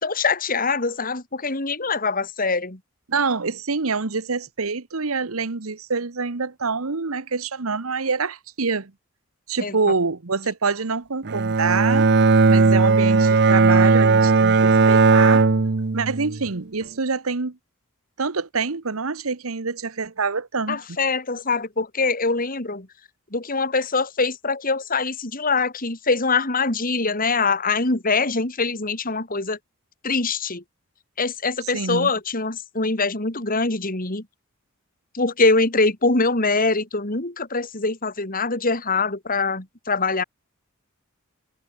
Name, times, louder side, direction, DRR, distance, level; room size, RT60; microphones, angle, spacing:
voice 1, 0.0-2.8 9.6-9.7 20.7-22.9 23.3-29.6 30.0-30.6 31.2-34.2 35.1-40.2, left 3 dB, 40° left, 3.3 m, -23 dB
voice 2, 3.1-8.9 9.5-12.1 12.5-15.4 15.9-17.6 18.2-20.8 31.7-32.1, right 4 dB, 85° right, 1.2 m, -26 dB
Bowed string instrument, 11.2-16.5, right 4 dB, 55° right, 0.7 m, -17 dB
head